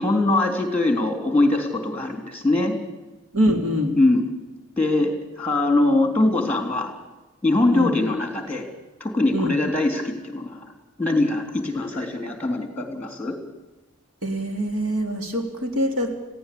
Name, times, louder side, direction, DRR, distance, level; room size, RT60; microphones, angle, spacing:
voice 1, 0.0-2.7 4.0-4.2 4.8-6.9 7.4-8.6 9.0-10.7 11.0-13.3, left 2 dB, 5° left, 6 dB, 3.4 m, -22 dB
voice 2, 3.3-4.0 7.7-7.9 9.3-9.6 14.2-16.2, equal, 80° right, 4 dB, 3.6 m, -24 dB
20.5 x 16.0 x 8.6 m, 1.1 s
head